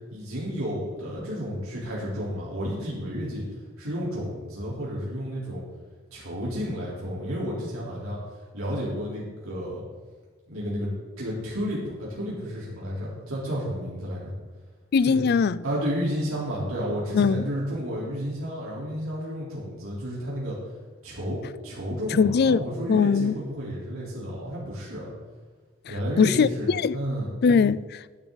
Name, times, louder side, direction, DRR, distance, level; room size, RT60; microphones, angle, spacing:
voice 1, 0.1-3.4 3.8-5.6 6.1-8.2 8.5-9.8 10.5-14.3 15.0-15.2 15.6-20.6 21.0-25.1 25.9-27.3, equal, 85° right, 3.7 m, -31 dB
voice 2, 14.9-15.6 17.1-17.4 22.2-22.6 22.9-23.3 26.2-27.0 27.4-28.0, left 5 dB, 50° left, 0.3 m, -20 dB
12.0 x 10.5 x 4.0 m
head